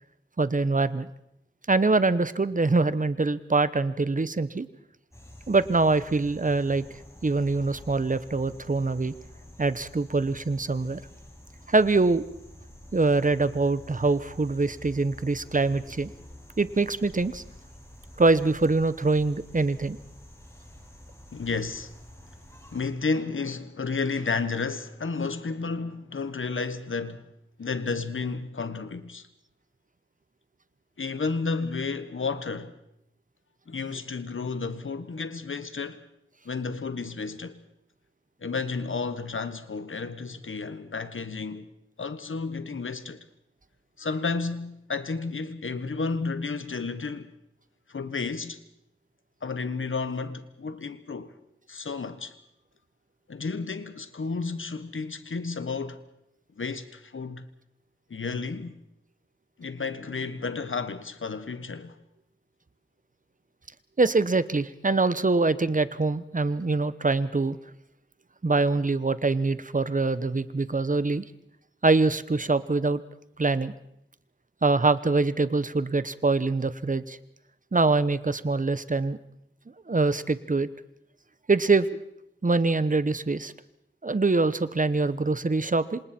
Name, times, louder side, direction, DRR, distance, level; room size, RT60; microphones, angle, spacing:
voice 1, 0.4-1.1 1.7-4.7 5.5-6.8 7.2-9.1 9.6-11.0 11.7-12.3 12.9-16.1 16.6-17.4 18.2-20.0 64.0-67.6 68.4-71.2 71.8-73.0 73.4-73.7 74.6-77.2 77.7-79.2 79.9-80.7 81.5-81.9 82.4-83.5 84.0-86.0, right 3 dB, 40° right, 1.0 m, -24 dB
sound 1, 5.1-22.9, left 1 dB, 15° left, 6.2 m, -48 dB
voice 2, 21.3-21.9 22.7-27.2 27.6-29.3 31.0-32.8 33.7-36.0 36.4-37.6 38.4-41.6 42.0-43.2 44.0-47.3 47.9-48.6 49.4-51.3 51.7-52.4 53.3-56.0 56.6-57.5 58.1-58.7 59.6-62.0, left 4 dB, 80° left, 1.3 m, -32 dB
27.5 x 26.5 x 4.5 m
wide cardioid pair, 75°, 21 cm